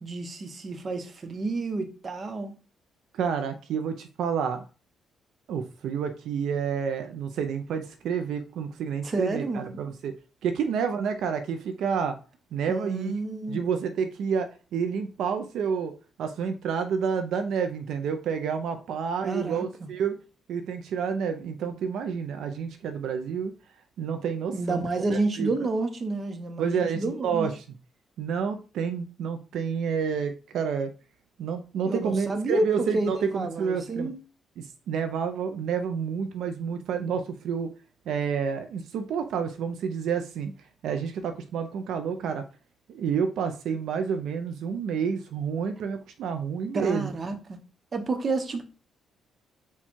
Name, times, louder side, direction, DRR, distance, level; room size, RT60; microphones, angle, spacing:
voice 1, 0.0-2.5 9.0-9.8 12.7-13.8 19.2-19.9 24.5-27.5 31.8-34.2 46.7-47.6 47.9-48.6, right 2 dB, 40° right, 0.8 m, -30 dB
voice 2, 3.1-4.6 5.5-10.2 10.4-12.2 12.5-13.1 13.5-15.9 16.2-20.2 20.5-23.5 24.0-24.8 25.4-25.5 26.6-27.5 28.2-30.9 31.4-34.1 34.6-37.7 38.1-40.5 40.8-42.4 42.9-47.1, right 6 dB, 75° right, 0.5 m, -29 dB
4.3 x 2.3 x 4.4 m
cardioid pair, 90°, 0 cm